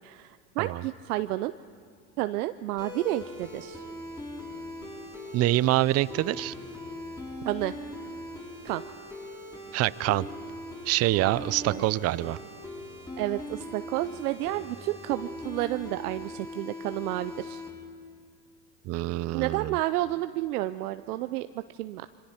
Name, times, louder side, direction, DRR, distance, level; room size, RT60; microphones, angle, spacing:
voice 1, 0.0-1.5 2.2-3.8 7.4-7.7 8.6-8.8 11.6-11.8 13.2-17.6 19.3-22.1, right 16 dB, 80° right, 12 dB, 0.6 m, -31 dB
sound 1, 2.8-17.7, left 1 dB, 10° left, 6.5 m, -40 dB
voice 2, 5.3-6.5 9.7-10.3 10.9-12.4 18.8-19.8, right 16 dB, 35° right, 19 dB, 0.5 m, -25 dB
26.0 x 24.5 x 4.4 m, 2.2 s
hypercardioid pair, 85°, 45 cm